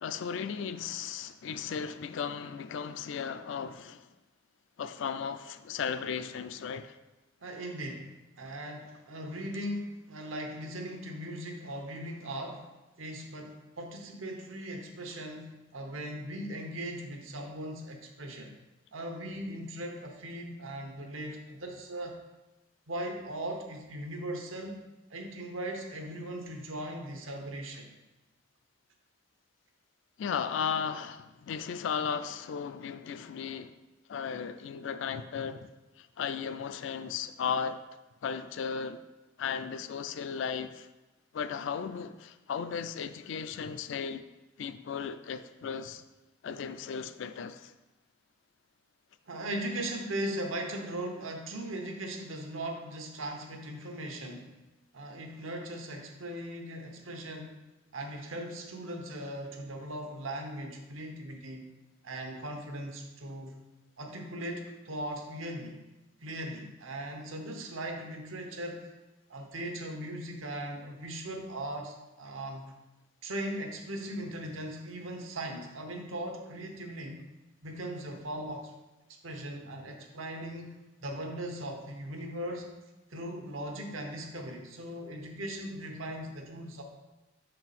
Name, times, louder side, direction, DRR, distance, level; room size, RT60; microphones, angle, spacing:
voice 1, 0.0-4.1 4.8-6.9 30.2-33.7 34.1-35.7 36.0-37.8 38.2-39.0 39.4-40.9 41.3-44.2 44.6-46.0 46.4-47.7, left 6 dB, 70° left, 0.3 m, -35 dB
voice 2, 7.4-12.7 13.0-18.5 18.9-22.2 22.9-24.8 25.1-27.9 49.3-54.5 54.9-57.6 57.9-61.7 62.0-63.5 64.0-65.8 66.2-68.9 69.3-72.6 73.2-77.2 77.6-78.7 79.2-80.7 81.0-82.7 83.1-86.8, right 1 dB, 85° right, 1.0 m, -39 dB
6.5 x 4.4 x 4.1 m
head